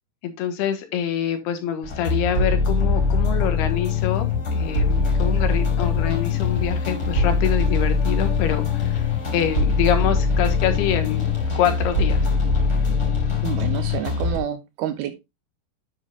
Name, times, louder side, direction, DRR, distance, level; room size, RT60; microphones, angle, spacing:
voice 1, 0.2-11.2 11.5-12.3, left 9 dB, 80° left, 7 dB, 3.4 m, -26 dB
sound 1, 1.8-14.4, left 4 dB, 25° left, 5.1 m, -22 dB
voice 2, 13.4-15.2, right 11 dB, 80° right, 9 dB, 2.7 m, -29 dB
9.9 x 7.8 x 2.4 m, 0.23 s
omnidirectional pair, 4.6 m